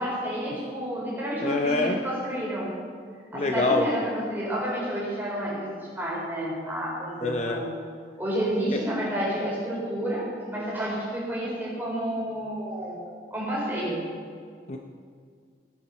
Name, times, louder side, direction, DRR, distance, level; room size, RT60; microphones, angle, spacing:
voice 1, 0.0-2.7 3.3-7.7 8.2-13.0 13.3-14.0, equal, 10° right, -6 dB, 4.1 m, -30 dB
voice 2, 1.4-2.0 3.3-3.9 7.2-7.6 8.7-8.8 14.7-14.8, left 3 dB, 35° left, 3 dB, 0.6 m, -25 dB
16.5 x 8.9 x 5.4 m, 2.1 s
head